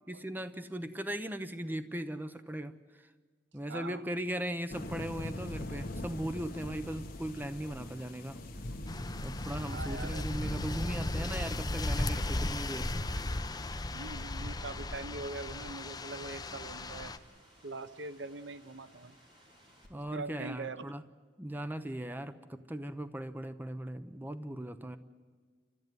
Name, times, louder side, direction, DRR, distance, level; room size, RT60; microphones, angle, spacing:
voice 1, 0.1-3.1 3.5-8.4 9.2-12.9 19.9-21.0 21.4-25.0, right 1 dB, 10° right, 10 dB, 0.8 m, -38 dB
voice 2, 3.7-4.0 9.7-10.3 13.9-17.1 17.6-19.2 19.9-20.8, right 3 dB, 75° right, 13 dB, 0.8 m, -42 dB
sound 1, 4.7-12.9, left 1 dB, 55° left, 1.5 m, -41 dB
sound 2, 5.4-19.9, equal, 25° right, 4.3 m, -61 dB
sound 3, 8.9-17.2, left 2 dB, 20° left, 0.7 m, -36 dB
29.5 x 13.5 x 9.3 m, 1.5 s
head